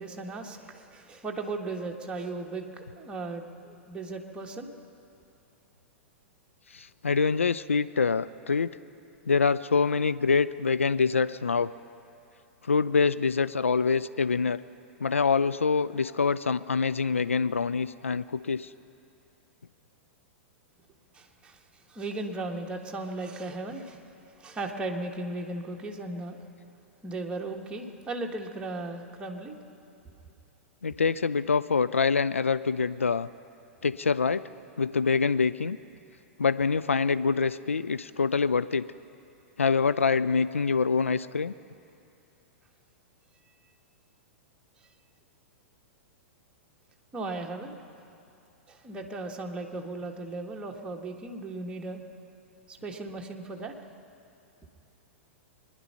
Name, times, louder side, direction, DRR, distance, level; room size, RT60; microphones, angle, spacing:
voice 1, 0.0-4.7 21.1-21.6 21.9-24.0 24.4-26.4 27.0-29.6 47.1-47.8 48.7-52.0 52.7-53.7, right 2 dB, 15° right, 1 dB, 1.4 m, -36 dB
voice 2, 6.7-8.7 9.3-11.7 12.6-14.6 15.0-18.7 30.8-33.3 33.8-34.4 34.8-35.8 36.4-38.8 39.6-41.5, left 5 dB, 80° left, 14 dB, 0.3 m, -25 dB
23.5 x 10.5 x 5.7 m, 2.6 s
figure-of-eight pair, 100°, 7 cm